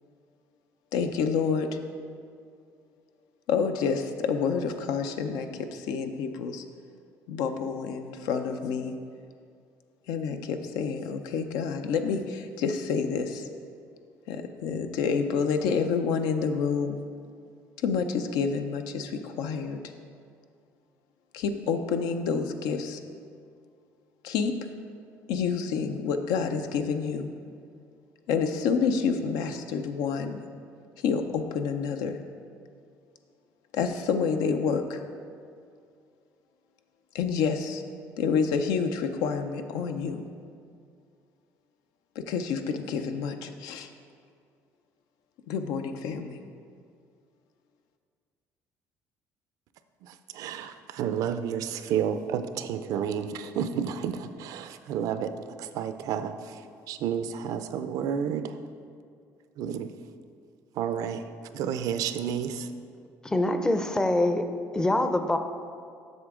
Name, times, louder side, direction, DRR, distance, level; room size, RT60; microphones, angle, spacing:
voice 1, 0.9-1.8 3.5-6.6 7.3-8.9 10.1-13.5 14.3-16.9 17.8-19.8 21.3-23.0 24.2-24.5 25.3-27.3 28.3-30.4 31.0-32.2 33.7-35.0 37.1-37.8 38.2-40.2 42.3-43.9 45.5-46.4, left 6 dB, 85° left, 7 dB, 0.5 m, -28 dB
voice 2, 50.4-55.3 55.7-56.3 56.9-58.5 59.6-59.9 60.8-61.2 61.5-62.7, right 8 dB, 70° right, 10 dB, 0.4 m, -30 dB
voice 3, 63.2-64.5 64.7-65.4, left 1 dB, 10° left, 8 dB, 0.5 m, -24 dB
8.0 x 6.1 x 3.7 m, 2.3 s
cardioid pair, 110°, 6 cm